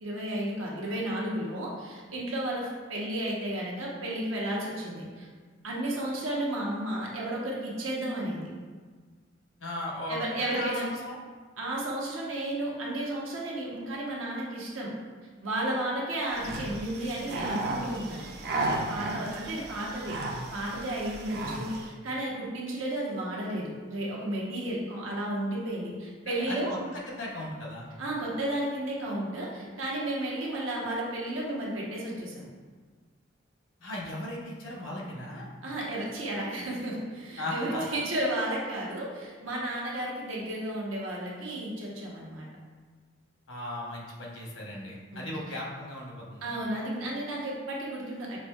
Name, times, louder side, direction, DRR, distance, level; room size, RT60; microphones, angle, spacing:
voice 1, 0.0-5.3 5.6-8.5 10.1-10.9 11.6-14.9 15.4-18.3 18.9-26.7 28.0-32.5 35.6-42.5 45.1-45.6 46.4-48.4, right 1 dB, 85° right, -4 dB, 0.9 m, -33 dB
voice 2, 9.6-11.2 26.3-26.8 27.1-27.9 33.8-35.5 37.4-37.9 43.5-46.5, left 1 dB, 80° left, -2 dB, 0.9 m, -37 dB
sound 1, 16.3-21.9, right 2 dB, 50° right, 0.4 m, -34 dB
5.7 x 2.6 x 2.3 m, 1.5 s
head